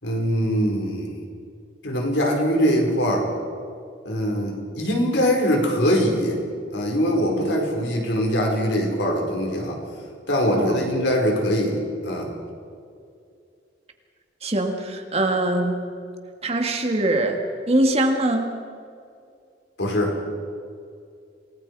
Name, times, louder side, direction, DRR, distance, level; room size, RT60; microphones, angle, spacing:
voice 1, 0.0-1.1 1.8-3.2 4.0-6.4 6.7-9.8 10.3-11.8 12.0-12.3 19.8-20.1, equal, 75° left, 0 dB, 4.9 m, -22 dB
voice 2, 14.4-15.8 16.4-17.4 17.7-18.5, right 1 dB, 35° right, 4 dB, 2.0 m, -22 dB
28.0 x 19.5 x 4.8 m, 2.3 s
head